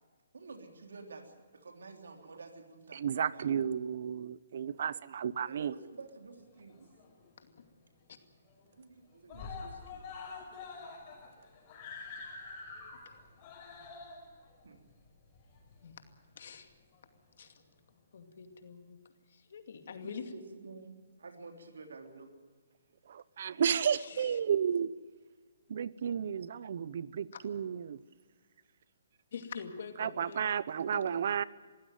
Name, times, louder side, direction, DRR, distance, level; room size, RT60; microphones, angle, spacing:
voice 1, 0.3-3.4 5.4-6.9 8.7-10.0 14.6-14.8 20.0-22.3, right 3 dB, 85° right, 4 dB, 3.5 m, -50 dB
voice 2, 2.9-5.7 23.1-24.9 25.7-28.0 30.0-31.4, right 8 dB, 55° right, 19 dB, 0.8 m, -32 dB
Screaming, 6.4-7.3 7.7-7.8 8.1-8.2 8.5-9.0 9.3-16.1 16.9-17.0, left 4 dB, 30° left, 5.8 m, -47 dB
voice 3, 16.4-16.7 17.4-17.6 18.1-19.0 19.3-20.3 23.8-24.4 29.3-30.5 30.9-31.2, left 6 dB, 60° left, 7 dB, 2.4 m, -45 dB
22.0 x 15.5 x 9.3 m, 1.4 s
hypercardioid pair, 155°, 0 cm